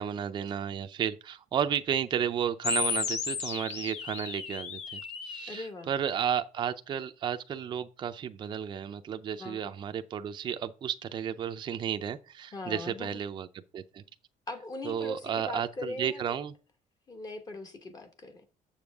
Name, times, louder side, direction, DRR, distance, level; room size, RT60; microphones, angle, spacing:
voice 1, 0.0-13.5 13.7-14.0 14.8-16.5, right 8 dB, 35° right, 0.5 m, -33 dB
sound 1, 2.6-5.6, left 6 dB, 55° left, 1.2 m, -34 dB
voice 2, 5.5-5.9 9.4-9.6 12.5-13.2 14.5-16.4 17.1-18.5, left 2 dB, 25° left, 1.1 m, -40 dB
7.2 x 7.0 x 3.5 m
cardioid pair, 170°, 14 cm